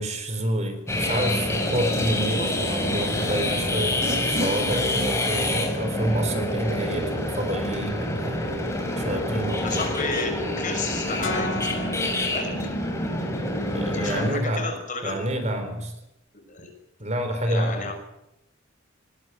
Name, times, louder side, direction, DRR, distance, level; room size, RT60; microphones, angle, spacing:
voice 1, 0.0-8.4 9.0-9.9 13.5-14.7 15.0-15.9 17.0-17.9, right 1 dB, 35° right, 7 dB, 4.1 m, -28 dB
sound 1, 0.9-14.3, left 1 dB, 15° left, 5.4 m, -27 dB
voice 2, 9.6-10.3 10.6-11.8 12.3-12.5 13.9-15.3 16.5-16.7 17.5-17.9, left 4 dB, 40° left, 4 dB, 6.1 m, -32 dB
sound 2, 11.2-13.3, left 2 dB, 85° left, 5.2 m, -34 dB
21.0 x 19.5 x 9.4 m, 0.85 s
head